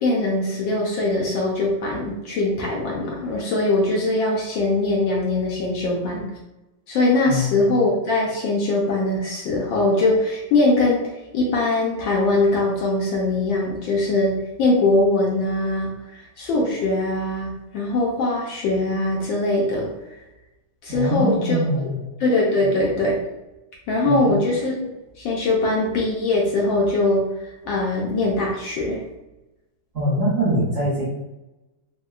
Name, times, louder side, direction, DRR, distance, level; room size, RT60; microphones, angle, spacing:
voice 1, 0.0-6.2 6.9-11.0 11.3-19.9 20.8-21.9 22.2-23.2 23.9-24.7 25.2-29.0, left 2 dB, 75° left, -3 dB, 1.2 m, -22 dB
voice 2, 7.3-7.6 20.9-22.1 24.0-24.3 29.9-31.1, equal, 55° right, -9 dB, 0.9 m, -23 dB
3.6 x 2.1 x 2.3 m, 1.0 s
omnidirectional pair, 2.4 m